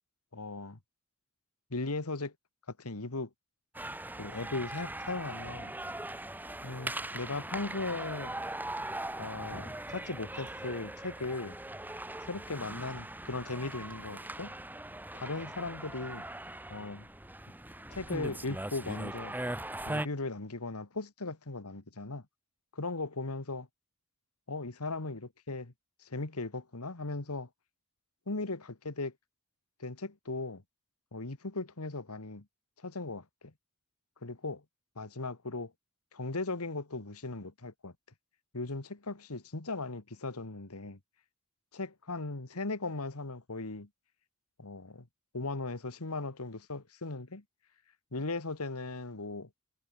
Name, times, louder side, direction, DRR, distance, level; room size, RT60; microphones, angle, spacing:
voice 1, 0.3-0.8 1.7-2.3 2.8-3.3 4.2-5.7 6.6-8.4 9.2-11.6 12.2-14.6 15.1-16.3 16.7-17.1 17.9-19.3 19.9-22.2 22.7-23.7 24.5-25.7 26.0-27.5 28.3-29.1 29.8-30.6 31.1-32.5 32.8-33.5 34.2-34.6 35.0-35.7 36.1-37.9 38.5-41.0 41.7-43.9 44.6-45.1 45.3-47.4 48.1-49.5, left 3 dB, 75° left, 1.8 m, -38 dB
sound 1, 3.7-20.1, right 1 dB, 10° right, 2.6 m, -40 dB
head